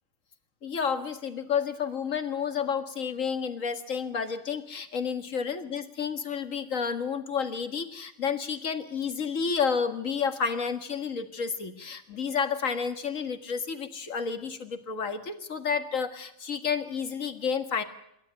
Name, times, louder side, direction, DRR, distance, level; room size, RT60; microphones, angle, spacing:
voice 1, 0.6-17.8, left 6 dB, 70° left, 9 dB, 2.2 m, -30 dB
26.5 x 13.0 x 8.9 m, 0.78 s
omnidirectional pair, 1.4 m